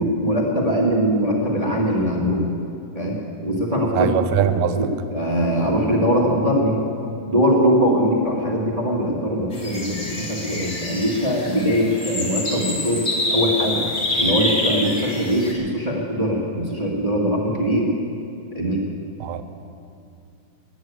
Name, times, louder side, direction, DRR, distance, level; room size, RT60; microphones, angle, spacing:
voice 1, 0.0-2.5 2.9-3.2 3.4-6.8 7.3-13.0 13.3-13.9 14.2-17.9 18.5-18.8, equal, 25° right, -2 dB, 0.8 m, -21 dB
voice 2, 3.9-4.8 19.2-19.4, right 9 dB, 75° right, 10 dB, 1.7 m, -21 dB
sound 1, 9.5-15.5, left 1 dB, 30° left, 2.2 m, -26 dB
14.0 x 10.5 x 8.5 m, 2.5 s
omnidirectional pair, 3.8 m